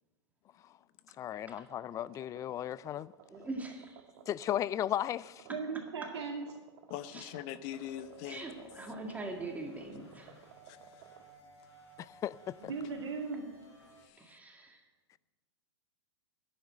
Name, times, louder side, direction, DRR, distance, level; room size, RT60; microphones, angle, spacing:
sound 1, 1.1-11.3, right 9 dB, 55° right, 1.5 m, -57 dB
voice 1, 1.2-3.1 4.3-5.5 12.0-12.7, left 11 dB, 20° left, 0.3 m, -35 dB
voice 2, 3.3-4.1 5.5-5.6 6.0-6.1 7.1-7.3 8.3-10.4 14.2-14.8, right 2 dB, 10° right, 1.9 m, -42 dB
voice 3, 5.5-6.4 12.6-13.4, right 5 dB, 90° right, 2.7 m, -37 dB
voice 4, 6.9-8.5 10.6-11.1 13.9-14.4, left 12 dB, 45° left, 0.8 m, -43 dB
sound 2, 7.6-14.1, left 2 dB, 70° left, 4.8 m, -57 dB
10.5 x 9.2 x 9.1 m
hypercardioid pair, 120°, 15 cm